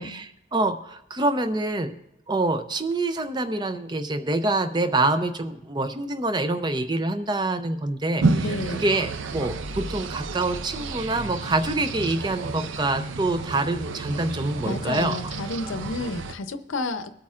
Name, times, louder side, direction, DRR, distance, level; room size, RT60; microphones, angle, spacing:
voice 1, 0.0-2.0 2.3-8.5 8.7-15.2, right 2 dB, 20° right, 9 dB, 0.4 m, -26 dB
sound 1, 8.2-16.3, right 3 dB, 75° right, 0.5 m, -30 dB
voice 2, 8.4-8.9 14.7-17.1, left 2 dB, 85° left, 11 dB, 0.6 m, -31 dB
23.0 x 8.5 x 2.4 m, 0.86 s
head